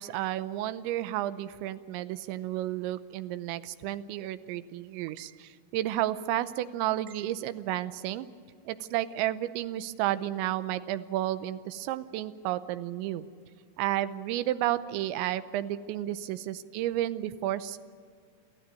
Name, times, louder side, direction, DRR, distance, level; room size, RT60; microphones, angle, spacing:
voice 1, 0.0-8.3 8.7-13.3 13.8-17.8, right 14 dB, 85° right, 13 dB, 3.0 m, -32 dB
26.0 x 14.5 x 8.9 m, 2.1 s
omnidirectional pair, 5.4 m